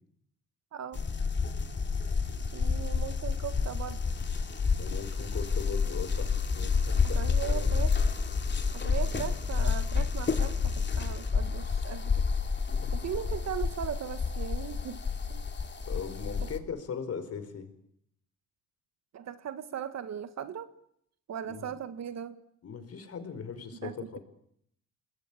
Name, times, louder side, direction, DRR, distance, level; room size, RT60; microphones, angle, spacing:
voice 1, 0.7-1.0 2.5-4.0 7.2-8.0 8.7-12.3 12.9-15.0 15.3-15.4 16.4-16.5 19.1-20.7 21.3-22.4 23.8-24.2, right 9 dB, 60° right, 11 dB, 1.8 m, -38 dB
sound 1, 0.9-16.6, left 5 dB, 35° left, 2.9 m, -29 dB
voice 2, 4.8-7.2 7.5-7.7 12.8-12.9 15.8-17.7 21.5-21.7 22.6-24.2, left 6 dB, 55° left, 11 dB, 5.0 m, -39 dB
27.5 x 21.0 x 8.6 m, 0.72 s
cardioid pair, 90°, 30 cm